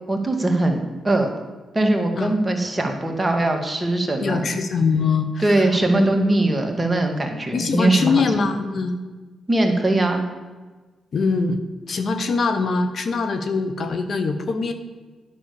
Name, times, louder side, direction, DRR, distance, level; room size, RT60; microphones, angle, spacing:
voice 1, 0.1-1.3 1.7-4.5 5.4-8.2 9.5-10.2, right 2 dB, 20° right, 3 dB, 2.0 m, -21 dB
voice 2, 4.2-6.4 7.5-9.0 11.1-11.6 11.9-14.7, left 4 dB, 60° left, 8 dB, 1.0 m, -23 dB
10.0 x 6.2 x 7.0 m, 1.3 s
supercardioid pair, 60°, 0 cm